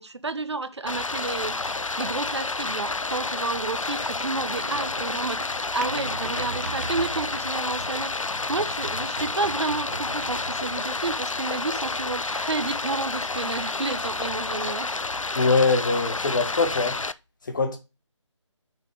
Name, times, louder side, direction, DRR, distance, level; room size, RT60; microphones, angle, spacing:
voice 1, 0.0-14.9, right 3 dB, 60° right, 0.9 m, -31 dB
Stream, 0.9-17.1, left 3 dB, 90° left, 0.5 m, -30 dB
sound 1, 3.9-8.0 8.4-10.8, right 4 dB, 30° right, 0.7 m, -39 dB
voice 2, 15.3-17.0 17.4-17.8, left 3 dB, 40° left, 1.5 m, -22 dB
6.0 x 4.9 x 4.7 m
figure-of-eight pair, 155°, 16 cm